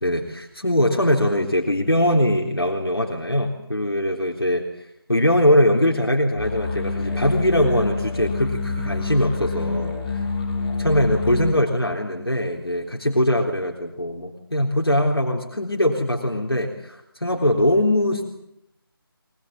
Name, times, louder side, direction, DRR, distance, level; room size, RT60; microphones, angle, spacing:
voice 1, 0.0-4.6 5.1-10.2 10.8-18.3, left 1 dB, 85° left, 1 dB, 3.7 m, -21 dB
sound 1, 6.4-11.5, left 3 dB, 15° left, 7.1 m, -27 dB
23.5 x 21.5 x 8.8 m, 0.80 s
figure-of-eight pair, 160°, 13 cm